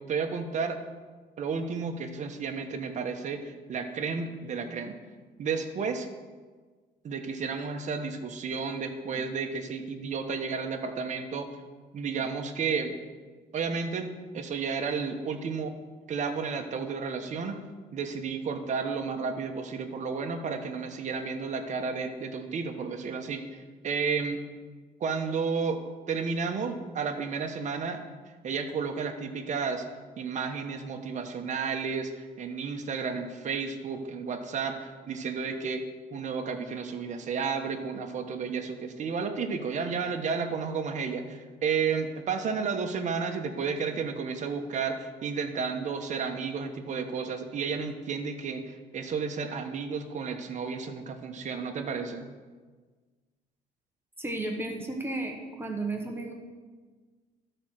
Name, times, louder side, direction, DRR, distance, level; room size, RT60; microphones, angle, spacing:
voice 1, 0.1-0.8 1.4-5.0 5.4-6.1 7.0-11.5 11.9-12.9 13.5-15.7 16.1-17.6 17.9-24.4 25.0-25.8 26.1-28.0 28.4-29.8 30.2-35.8 36.1-52.3, right 5 dB, 45° right, 5 dB, 1.1 m, -32 dB
voice 2, 54.2-56.3, right 2 dB, 15° right, 1 dB, 1.2 m, -33 dB
13.0 x 4.4 x 6.5 m, 1.4 s
cardioid pair, 110°, 17 cm